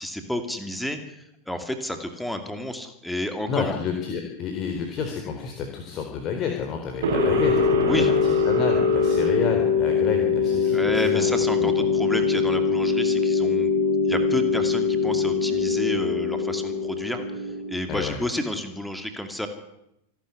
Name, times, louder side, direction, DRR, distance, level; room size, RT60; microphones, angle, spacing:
voice 1, 0.0-3.8 7.9-8.1 10.7-13.7 14.0-19.5, left 1 dB, ahead, 7 dB, 2.5 m, -31 dB
voice 2, 3.5-11.3 11.6-11.7 17.9-18.2, left 6 dB, 30° left, 3 dB, 4.1 m, -30 dB
sound 1, 7.0-17.9, left 5 dB, 60° right, 6.1 m, -22 dB
27.0 x 12.5 x 9.5 m, 0.84 s
figure-of-eight pair, 90°, 0 cm